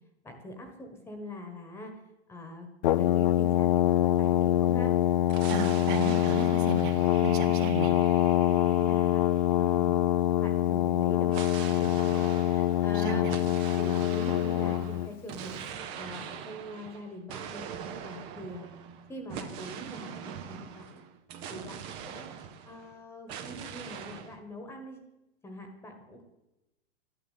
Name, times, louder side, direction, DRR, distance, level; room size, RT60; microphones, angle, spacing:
voice 1, 0.2-1.9 2.3-2.7 3.0-4.9 8.5-9.2 9.6-10.1 10.4-15.6 15.9-17.6 18.0-18.7 19.1-21.0 21.5-25.0 25.4-26.2, left 1 dB, 5° left, 5 dB, 1.3 m, -43 dB
Brass instrument, 2.8-15.1, left 12 dB, 40° left, 0.4 m, -25 dB
sound 1, 5.3-10.0 11.3-22.9 23.3-24.4, right 8 dB, 15° right, 0.5 m, -43 dB
voice 2, 5.5-6.9 7.2-7.9 12.9-13.3, right 7 dB, 45° right, 5 dB, 1.9 m, -34 dB
13.0 x 11.0 x 8.3 m, 0.96 s
hypercardioid pair, 160°, 36 cm